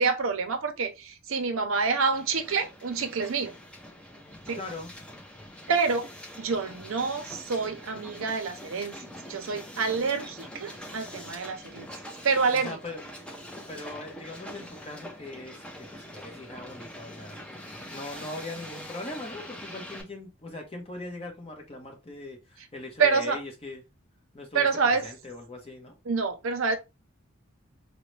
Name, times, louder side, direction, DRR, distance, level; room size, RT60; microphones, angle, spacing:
voice 1, 0.0-3.5 4.5-4.6 5.7-6.1 6.4-11.9 12.2-12.8 23.0-23.4 24.5-25.1 26.1-26.8, right 5 dB, 70° right, 0.5 m, -27 dB
Hiss, 2.1-20.0, equal, 5° left, 0.5 m, -44 dB
voice 2, 4.5-4.9 12.5-13.0 13.7-23.8 24.3-25.9, left 2 dB, 25° left, 0.8 m, -40 dB
3.8 x 2.1 x 3.1 m
head